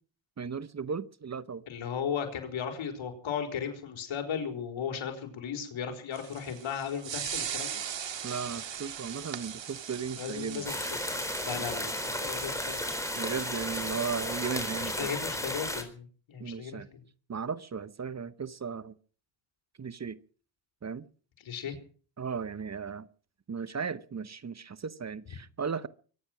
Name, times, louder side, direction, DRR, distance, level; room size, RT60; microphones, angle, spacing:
voice 1, 0.4-1.6 8.2-10.7 11.7-11.8 13.2-15.1 16.4-16.9 17.3-18.9 19.8-20.2 20.8-21.1 22.2-23.1 23.5-25.9, right 6 dB, 35° right, 16 dB, 0.9 m, -36 dB
voice 2, 1.7-7.7 10.1-10.8 11.4-12.8 14.8-17.0 21.4-21.8, left 7 dB, 80° left, 5 dB, 4.4 m, -36 dB
sound 1, 6.1-15.1, right 9 dB, 70° right, 2.0 m, -40 dB
sound 2, 10.6-15.8, left 1 dB, 5° left, 3.9 m, -34 dB
23.5 x 10.0 x 6.1 m, 0.43 s
cardioid pair, 85°, 46 cm